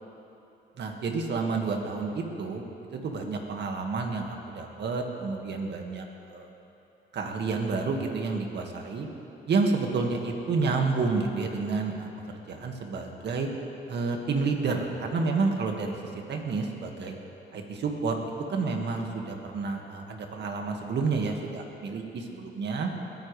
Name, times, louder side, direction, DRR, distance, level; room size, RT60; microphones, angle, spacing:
voice 1, 0.8-2.7 2.9-6.5 7.1-9.1 9.5-12.1 12.5-13.5 13.9-17.1 17.5-18.2 18.5-22.9, right 4 dB, 60° right, 2 dB, 1.9 m, -30 dB
21.5 x 15.0 x 3.3 m, 2.8 s
cardioid pair, 90°, 20 cm